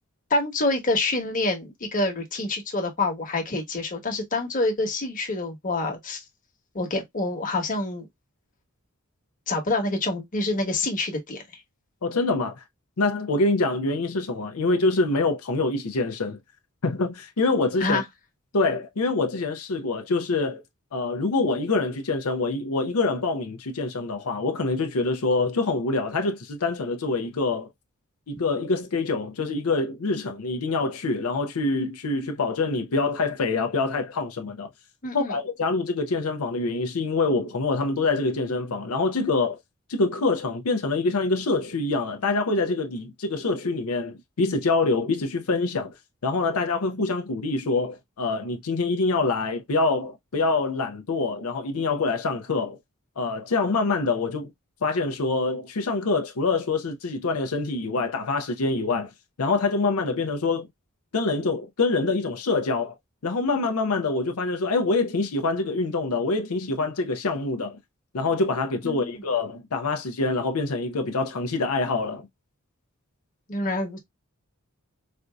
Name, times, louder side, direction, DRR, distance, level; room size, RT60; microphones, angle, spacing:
voice 1, 0.3-6.2 6.7-8.1 9.5-11.6 17.8-18.0 35.0-35.4 68.8-69.2 73.5-74.0, left 2 dB, 40° left, 1.2 m, -27 dB
voice 2, 12.0-12.6 13.0-16.4 16.8-18.0 18.5-20.6 20.9-27.7 28.3-34.7 35.1-39.6 39.9-45.9 46.2-52.8 53.2-54.5 54.8-59.1 59.4-60.7 61.1-63.0 63.2-67.8 68.1-72.3, left 3 dB, 85° left, 0.6 m, -25 dB
4.3 x 2.6 x 2.2 m
head